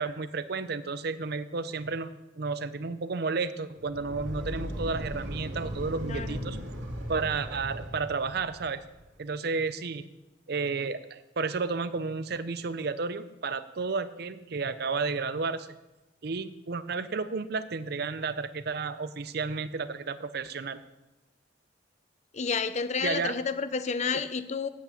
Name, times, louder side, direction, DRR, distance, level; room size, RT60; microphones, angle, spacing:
voice 1, 0.0-6.6 7.1-8.8 9.2-10.0 10.5-15.7 16.2-20.8 23.0-23.4 24.1-24.2, right 4 dB, 60° right, 0.6 m, -32 dB
sound 1, 3.8-9.0, equal, 80° right, 2.3 m, -37 dB
voice 2, 22.3-24.7, left 5 dB, 40° left, 0.6 m, -30 dB
8.5 x 8.1 x 7.1 m
head